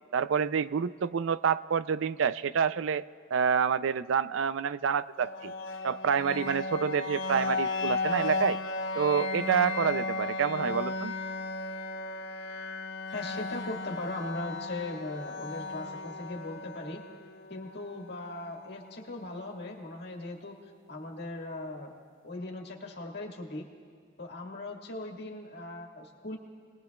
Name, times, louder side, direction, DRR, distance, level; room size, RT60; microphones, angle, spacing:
voice 1, 0.1-3.1 3.3-5.5 5.8-8.6 9.0-11.1, right 7 dB, 85° right, 15 dB, 0.4 m, -28 dB
sound 1, 5.2-19.1, left 3 dB, 85° left, 0.8 m, -35 dB
voice 2, 13.1-17.0 17.5-20.5 20.9-21.9 22.2-23.7 24.2-26.4, left 2 dB, 60° left, 0 dB, 1.8 m, -39 dB
28.5 x 20.0 x 2.3 m, 2.1 s
head